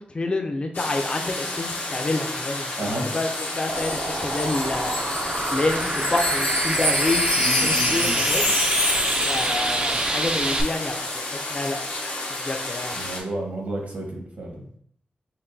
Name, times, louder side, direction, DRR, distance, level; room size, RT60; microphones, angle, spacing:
voice 1, 0.0-4.9 5.5-8.4 9.3-11.0 11.3-11.8 12.3-13.0, left 2 dB, 35° left, 3 dB, 0.5 m, -28 dB
sound 1, 0.7-13.2, left 2 dB, 85° left, 0.9 m, -32 dB
Wind chime, 3.0-10.2 10.5-10.7, left 2 dB, 60° left, 1.0 m, -27 dB
sound 2, 3.7-10.6, right 2 dB, 35° right, 0.4 m, -27 dB
voice 2, 7.4-8.2 12.9-14.7, right 1 dB, 60° right, 0 dB, 1.2 m, -31 dB
5.7 x 2.2 x 2.6 m, 0.65 s
wide cardioid pair, 115°, 3 cm